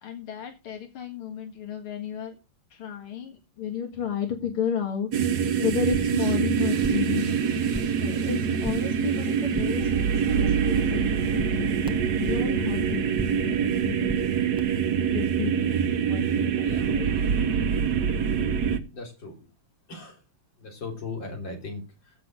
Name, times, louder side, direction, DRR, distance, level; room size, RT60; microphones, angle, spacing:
voice 1, 0.0-2.4 2.7-5.1 5.4-7.4 8.0-9.9 10.3-14.2 15.0-15.8 16.1-17.1, left 7 dB, 90° left, 4 dB, 2.8 m, -32 dB
sound 1, 5.1-18.8, right 7 dB, 55° right, 1.5 m, -25 dB
sound 2, 7.6-8.1 8.4-9.0 9.3-9.9 10.2-10.8 11.1-12.6 12.9-13.5 13.8-14.6, right 1 dB, 5° right, 0.6 m, -38 dB
voice 2, 16.6-16.9 18.9-19.3 19.9-20.2 20.6-22.1, left 3 dB, 60° left, 2 dB, 4.2 m, -38 dB
16.0 x 6.0 x 6.3 m, 0.30 s
omnidirectional pair, 2.3 m